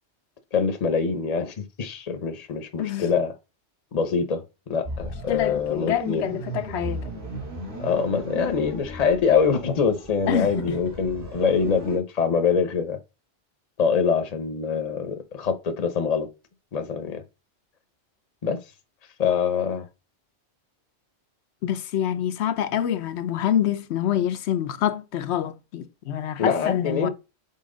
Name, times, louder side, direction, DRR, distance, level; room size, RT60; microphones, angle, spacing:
voice 1, 0.5-3.3 3.9-4.4 4.7-6.3 7.8-13.0 13.8-16.3 16.7-17.2 18.4-18.6 19.2-19.8 26.4-27.1, left 6 dB, 40° left, 0.8 m, -24 dB
voice 2, 2.8-3.1 5.3-7.1 10.3-10.5 21.6-27.1, left 10 dB, 80° left, 0.9 m, -26 dB
sound 1, 4.8-12.0, right 1 dB, 65° right, 2.6 m, -36 dB
5.6 x 4.5 x 3.7 m
omnidirectional pair, 1.1 m